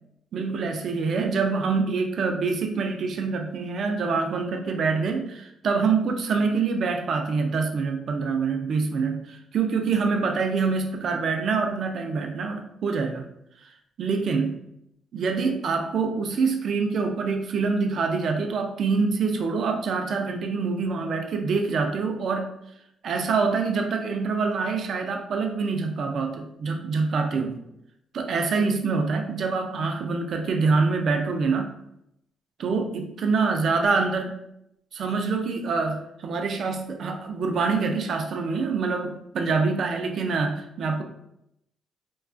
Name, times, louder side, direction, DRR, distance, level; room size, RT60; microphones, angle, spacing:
voice 1, 0.3-13.3 13.6-13.7 14.0-14.6 15.1-22.5 23.0-27.6 28.1-31.7 32.6-34.4 34.9-41.0, right 4 dB, 60° right, 4 dB, 0.3 m, -25 dB
2.3 x 2.2 x 2.4 m, 0.78 s
cardioid pair, 90°, 0 cm